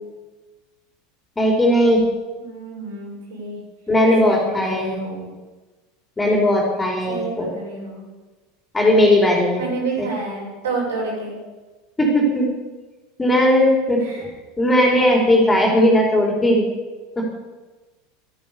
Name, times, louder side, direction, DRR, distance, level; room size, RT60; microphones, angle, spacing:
voice 1, 1.4-2.1 3.9-5.0 6.2-7.5 8.7-9.6 10.0-10.1 12.0-12.5 13.2-14.3 14.6-16.7 17.2-17.3, left 1 dB, 15° left, 0 dB, 4.6 m, -17 dB
voice 2, 2.4-3.6 4.2-5.3 7.1-8.1 9.6-11.4 14.0-14.2, right 3 dB, 65° right, -2 dB, 6.8 m, -29 dB
13.5 x 13.0 x 7.1 m, 1.2 s
figure-of-eight pair, 80°, 0 cm